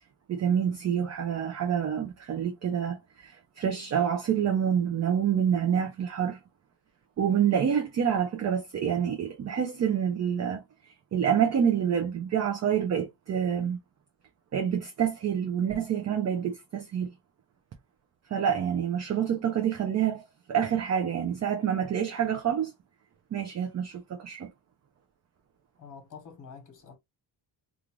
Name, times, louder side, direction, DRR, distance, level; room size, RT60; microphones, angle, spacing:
voice 1, 0.3-6.4 7.2-13.8 14.5-17.1 18.3-20.2 20.5-22.7 23.3-24.5, right 8 dB, 40° right, 0.4 m, -27 dB
voice 2, 25.8-27.0, left 6 dB, 40° left, 1.1 m, -47 dB
2.5 x 2.4 x 3.0 m
wide cardioid pair, 165°, 46 cm